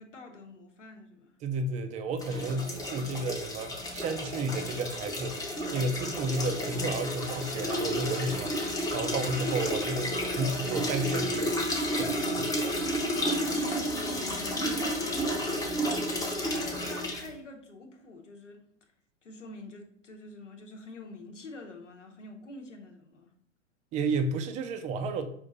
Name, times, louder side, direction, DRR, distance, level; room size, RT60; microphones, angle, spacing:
voice 1, 0.0-1.3 13.4-15.0 15.8-16.1 16.5-18.6 19.2-23.3, left 2 dB, 85° left, 1.0 m, -46 dB
voice 2, 1.4-8.5 8.9-11.5 11.9-12.6 23.9-25.3, right 2 dB, 20° right, 0.4 m, -32 dB
sound 1, 2.2-17.3, equal, 10° left, 0.7 m, -31 dB
5.3 x 2.5 x 3.9 m
hypercardioid pair, 105°, 36 cm